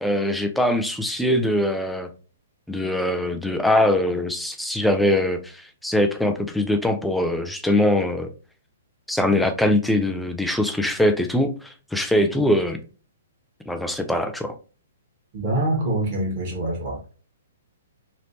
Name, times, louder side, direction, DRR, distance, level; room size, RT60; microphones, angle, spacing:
voice 1, 0.0-2.1 2.7-8.3 9.1-12.8 13.7-14.5, left 1 dB, ahead, 6 dB, 0.4 m, -22 dB
voice 2, 15.3-17.0, right 1 dB, 40° right, -1 dB, 1.3 m, -25 dB
3.1 x 2.9 x 2.7 m, 0.37 s
figure-of-eight pair, 115°, 0 cm